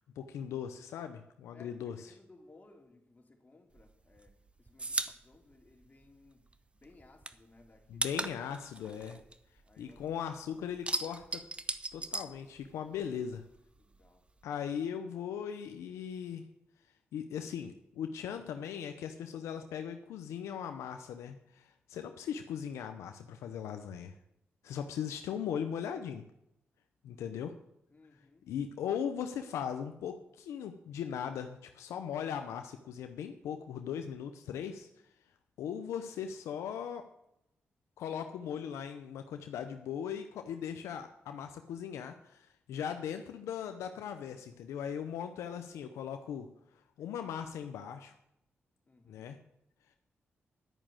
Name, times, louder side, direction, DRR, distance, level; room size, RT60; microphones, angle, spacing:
voice 1, 0.2-2.1 7.9-9.2 9.8-11.4 11.9-13.4 14.4-16.4 17.1-24.1 24.6-26.2 27.0-27.5 28.4-34.9 35.6-37.1 38.0-46.5 47.0-48.1 49.1-49.4, left 8 dB, 90° left, 7 dB, 0.7 m, -39 dB
voice 2, 1.5-8.1 9.6-10.2 10.5-10.7 13.8-14.3 27.9-28.5 48.8-49.3, left 2 dB, 35° left, 1 dB, 2.7 m, -60 dB
sound 1, 3.8-6.6 6.8-10.1 10.4-13.1 13.3-14.4, right 2 dB, 25° right, 0.8 m, -38 dB
11.0 x 6.1 x 8.9 m, 0.81 s
supercardioid pair, 55°, 5 cm